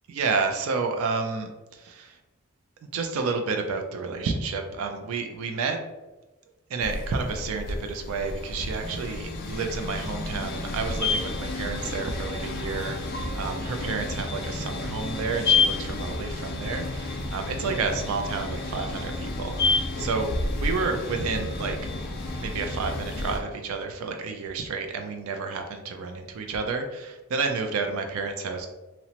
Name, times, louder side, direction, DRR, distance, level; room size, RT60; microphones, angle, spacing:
voice 1, 0.1-2.2 2.9-5.8 6.7-20.3 20.5-21.8 22.4-28.7, right 4 dB, 70° right, 5 dB, 0.3 m, -30 dB
sound 1, 6.8-23.4, left 3 dB, 45° left, 0.3 m, -30 dB
2.8 x 2.0 x 2.8 m, 1.1 s
head